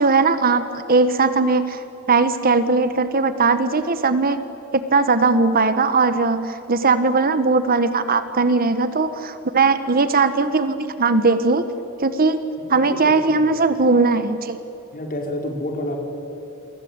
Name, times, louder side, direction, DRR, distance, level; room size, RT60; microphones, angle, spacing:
voice 1, 0.0-4.4 4.7-11.6 12.0-12.4 12.7-14.6, right 3 dB, 40° right, 11 dB, 1.3 m, -19 dB
voice 2, 12.6-13.6 14.9-16.0, left 1 dB, 40° left, 2 dB, 4.9 m, -30 dB
28.5 x 23.5 x 8.9 m, 3.0 s
head